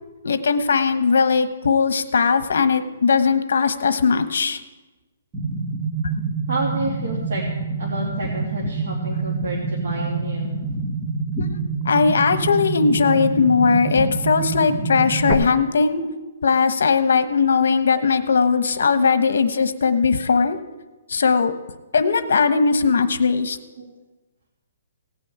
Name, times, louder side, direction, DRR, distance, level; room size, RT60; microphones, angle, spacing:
voice 1, 0.2-4.6 6.0-6.1 11.8-16.0 16.4-20.6 21.1-21.5 21.9-23.6, left 5 dB, 65° left, 11 dB, 1.1 m, -19 dB
sound 1, 5.3-15.3, right 3 dB, 10° right, 1.2 m, -26 dB
voice 2, 6.5-7.4 7.8-10.5 18.9-19.1 23.8-23.9, right 2 dB, 55° right, -4 dB, 2.7 m, -29 dB
17.0 x 6.4 x 8.8 m, 1.1 s
hypercardioid pair, 180°, 0 cm